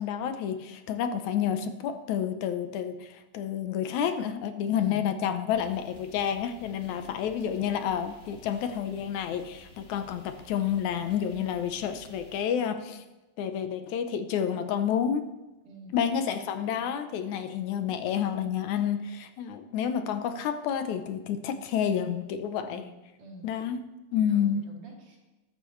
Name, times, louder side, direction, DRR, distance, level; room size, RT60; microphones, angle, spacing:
voice 1, 0.0-13.0 13.4-15.3 15.9-22.9 23.4-23.8 24.1-24.7, left 8 dB, 80° left, 8 dB, 2.2 m, -29 dB
voice 2, 4.7-5.2 6.8-7.2 15.6-16.0 22.6-23.6 24.3-25.2, equal, 90° right, -2 dB, 4.8 m, -48 dB
sound 1, 5.5-12.4, left 1 dB, 25° left, 1.5 m, -53 dB
21.5 x 12.0 x 3.2 m, 1.1 s
omnidirectional pair, 3.4 m